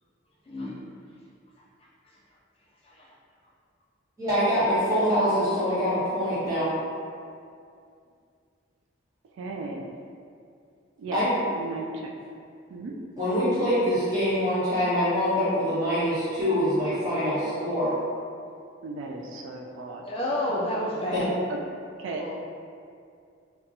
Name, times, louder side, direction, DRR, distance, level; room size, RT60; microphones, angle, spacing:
voice 1, 0.5-0.8 2.8-3.1 20.1-21.4 22.0-22.3, left 1 dB, 30° left, -5 dB, 0.4 m, -30 dB
voice 2, 4.2-6.7 11.1-11.3 13.2-17.9 21.1-21.2, equal, 20° right, -12 dB, 1.2 m, -24 dB
voice 3, 9.4-9.9 11.0-11.2 11.5-12.2 12.7-13.0 18.8-20.0 21.5-21.6 22.0-22.3, right 3 dB, 80° right, 1 dB, 0.3 m, -36 dB
4.0 x 2.2 x 2.7 m, 2.4 s
head